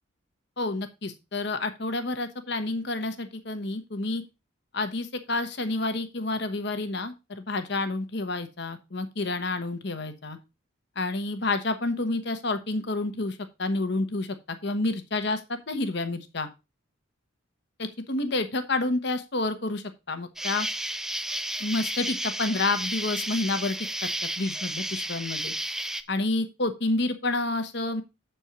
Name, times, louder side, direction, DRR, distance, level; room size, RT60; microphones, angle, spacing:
voice 1, 0.6-4.2 4.7-10.4 11.0-16.5 17.8-20.7 21.6-24.1 24.4-25.5 26.1-28.0, left 2 dB, 55° left, 9 dB, 1.1 m, -29 dB
Insect, 20.4-26.0, right 1 dB, ahead, 0.4 m, -32 dB
7.9 x 4.5 x 5.7 m, 0.26 s
head